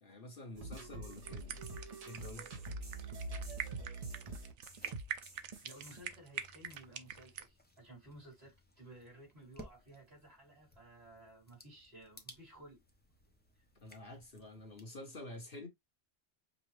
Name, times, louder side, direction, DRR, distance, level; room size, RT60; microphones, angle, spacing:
voice 1, 0.0-1.6 2.0-2.7 13.8-15.7, left 2 dB, 55° left, 1.3 m, -49 dB
sound 1, 0.5-6.0, right 2 dB, 35° right, 0.9 m, -45 dB
sound 2, 1.1-7.5, right 9 dB, 85° right, 1.0 m, -45 dB
sound 3, 4.7-14.9, equal, 10° left, 0.8 m, -60 dB
voice 2, 5.6-12.8, right 1 dB, 60° right, 3.3 m, -56 dB
5.2 x 2.4 x 3.2 m
omnidirectional pair, 1.2 m